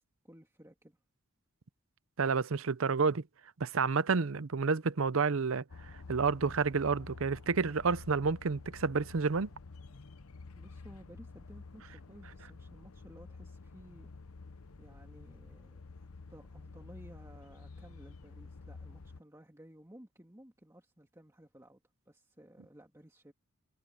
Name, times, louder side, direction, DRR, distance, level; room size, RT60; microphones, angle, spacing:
voice 1, 0.2-1.0 10.6-14.1 14.8-23.3, right 1 dB, 15° right, 2.0 m, -56 dB
voice 2, 2.2-3.2 3.6-5.6 6.1-9.5, right 5 dB, 70° right, 0.7 m, -29 dB
sound 1, 5.7-19.2, left 3 dB, 90° left, 0.9 m, -50 dB
head